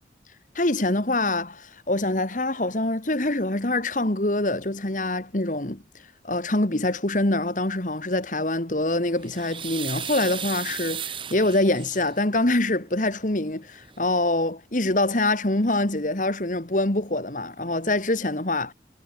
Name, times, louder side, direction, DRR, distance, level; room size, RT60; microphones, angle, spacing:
voice 1, 0.6-5.8 6.2-18.7, left 2 dB, 45° left, 1.8 m, -25 dB
sound 1, 8.9-12.2 13.5-13.6 13.8-14.0, right 8 dB, 30° right, 1.6 m, -35 dB
head